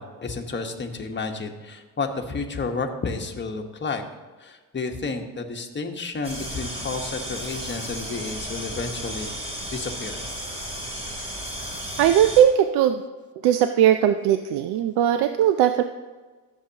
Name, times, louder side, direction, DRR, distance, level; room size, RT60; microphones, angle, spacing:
voice 1, 0.0-4.0 4.4-9.4 9.7-10.2, left 4 dB, 25° left, 4 dB, 1.2 m, -31 dB
sound 1, 6.2-12.4, equal, 15° right, 3.3 m, -34 dB
voice 2, 12.0-13.0 13.4-15.8, right 10 dB, 75° right, 9 dB, 0.6 m, -19 dB
14.0 x 7.3 x 2.9 m, 1.3 s
cardioid pair, 90°, 40 cm